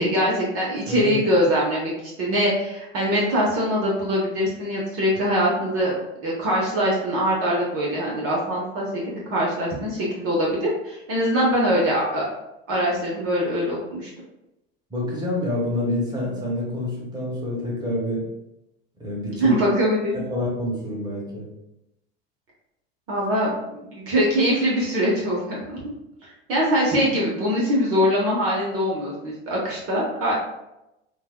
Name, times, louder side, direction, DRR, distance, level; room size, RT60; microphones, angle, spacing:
voice 1, 0.0-1.9 2.2-5.9 6.2-12.3 12.7-14.1 19.4-20.2 23.1-25.8 26.5-30.3, equal, 50° right, -4 dB, 1.1 m, -23 dB
voice 2, 14.9-18.3 19.0-19.5 20.1-21.5, left 1 dB, 15° right, -4 dB, 1.4 m, -27 dB
5.1 x 2.3 x 2.2 m, 0.90 s
hypercardioid pair, 85°, 30 cm